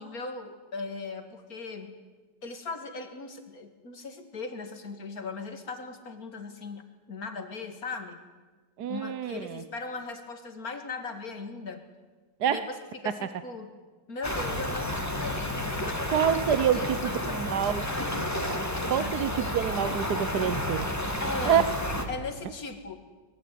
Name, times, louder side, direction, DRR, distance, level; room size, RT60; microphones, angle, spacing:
voice 1, 0.0-1.9 2.4-8.2 8.9-11.9 12.5-12.7 13.0-13.7 14.1-16.3 16.7-18.4 19.0-19.1 21.2-21.7 22.1-23.0, left 3 dB, 50° left, 7 dB, 2.8 m, -38 dB
voice 2, 8.8-9.6 12.4-12.7 13.0-13.2 16.1-17.8 18.9-20.9 21.5-21.6, right 9 dB, 65° right, 12 dB, 1.4 m, -27 dB
sound 1, 14.2-22.1, left 1 dB, 10° left, 2.4 m, -31 dB
24.5 x 21.0 x 9.3 m, 1.4 s
omnidirectional pair, 1.9 m